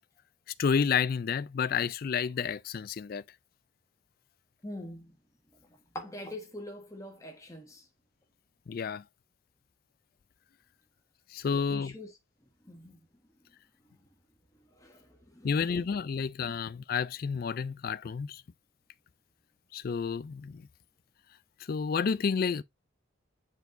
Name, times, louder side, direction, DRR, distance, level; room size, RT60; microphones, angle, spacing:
voice 1, 0.6-3.2 8.7-9.0 11.3-12.0 15.4-18.4 19.7-20.6 21.7-22.6, left 6 dB, 45° left, 0.3 m, -30 dB
voice 2, 4.6-5.1 5.9-7.8 11.5-12.1 12.6-13.0 14.8-15.5 16.4-16.5, left 1 dB, 15° left, 1.3 m, -43 dB
8.0 x 4.6 x 2.6 m
head